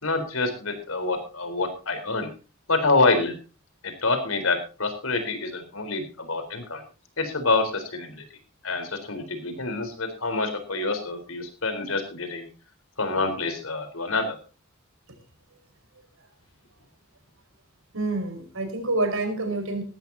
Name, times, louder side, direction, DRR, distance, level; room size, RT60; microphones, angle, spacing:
voice 1, 0.0-2.3 2.7-3.4 3.8-6.8 7.2-8.2 8.6-12.5 13.0-14.4, left 3 dB, 85° left, 8 dB, 4.1 m, -26 dB
voice 2, 17.9-19.8, right 2 dB, 85° right, 7 dB, 4.9 m, -27 dB
18.5 x 15.0 x 2.8 m, 0.33 s
head